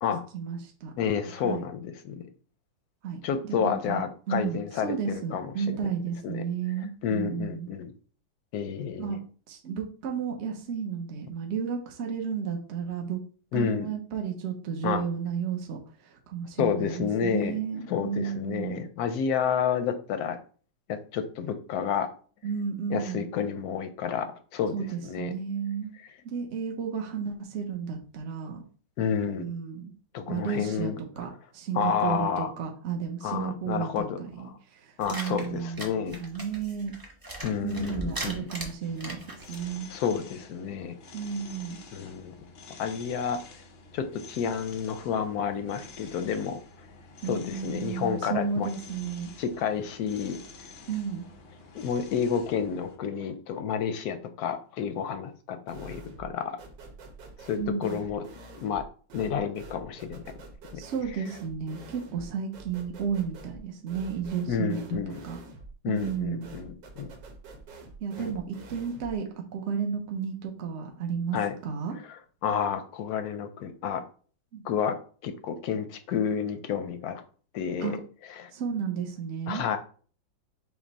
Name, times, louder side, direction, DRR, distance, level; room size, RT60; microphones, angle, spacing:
voice 1, 0.3-0.9 1.4-1.6 3.0-3.2 3.5-4.0 4.3-7.7 9.0-9.2 9.5-13.2 13.5-18.8 22.4-23.3 24.7-25.9 26.2-28.6 29.4-29.9 30.3-30.9 31.2-36.9 37.6-39.9 41.1-41.8 47.2-49.3 50.9-51.3 57.6-58.0 60.8-65.0 65.2-65.4 65.8-66.5 68.0-69.2 69.5-71.4 71.6-72.0 74.5-74.6 77.8-78.0 78.5-79.6, right 6 dB, 60° right, 2 dB, 0.7 m, -33 dB
voice 2, 1.0-2.2 3.2-5.8 6.2-6.5 6.8-7.9 8.5-9.2 13.5-13.9 14.8-15.0 16.6-17.6 17.9-20.4 20.9-22.1 22.9-25.3 29.0-29.5 30.1-31.0 31.7-32.5 33.2-34.5 35.0-36.2 37.4-38.4 39.9-41.0 41.9-42.3 42.8-43.4 43.9-46.6 47.2-48.7 49.4-50.4 51.7-56.6 57.5-58.3 58.6-58.8 59.1-60.3 60.7-60.8 64.5-65.2 65.8-67.1 68.2-68.3 71.3-71.6 72.0-74.0 74.6-75.0 75.2-77.2 77.5-78.0 78.4-78.5 79.5-79.8, left 7 dB, 70° left, 9 dB, 0.9 m, -30 dB
sound 1, 35.0-39.7, right 1 dB, 30° right, 0.4 m, -39 dB
sound 2, 38.8-53.0, left 3 dB, 90° left, 0.5 m, -49 dB
sound 3, 55.7-56.3 56.6-69.2, right 3 dB, 90° right, 1.6 m, -47 dB
5.9 x 2.2 x 4.0 m, 0.41 s
omnidirectional pair, 2.0 m